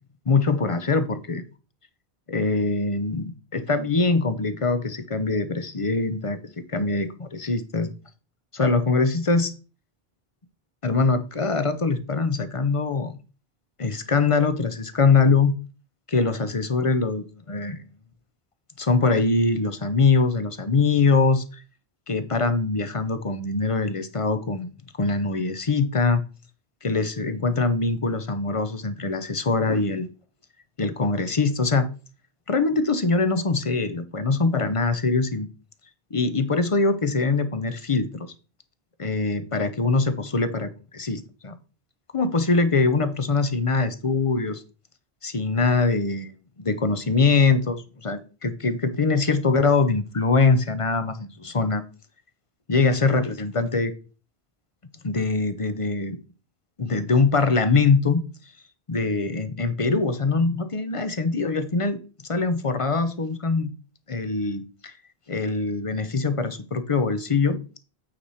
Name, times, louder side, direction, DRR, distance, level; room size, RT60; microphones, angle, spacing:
voice 1, 0.3-1.4 2.3-6.4 6.7-7.9 8.5-9.5 10.8-13.1 13.8-15.5 16.1-17.8 18.8-21.6 22.1-24.7 24.9-26.2 26.8-30.1 30.8-31.9 32.5-35.5 36.1-38.3 39.0-41.5 42.1-44.6 45.2-51.8 52.7-53.9 55.0-56.2 56.8-58.2 58.9-62.0 62.3-63.7 64.1-64.9 65.3-67.6, left 4 dB, 35° left, 0.7 m, -23 dB
8.7 x 4.8 x 4.2 m
omnidirectional pair, 1.0 m